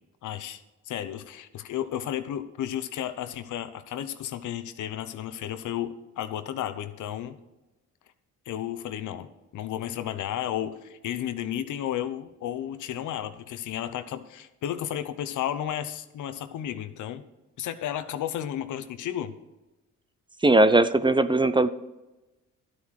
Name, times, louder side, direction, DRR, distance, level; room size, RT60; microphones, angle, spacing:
voice 1, 0.2-0.6 0.9-7.4 8.5-17.2 17.6-19.3, left 11 dB, 75° left, 11 dB, 1.0 m, -33 dB
voice 2, 20.4-21.7, right 2 dB, 15° right, 13 dB, 0.6 m, -19 dB
12.5 x 8.7 x 4.8 m, 1.0 s
cardioid pair, 90°, 30 cm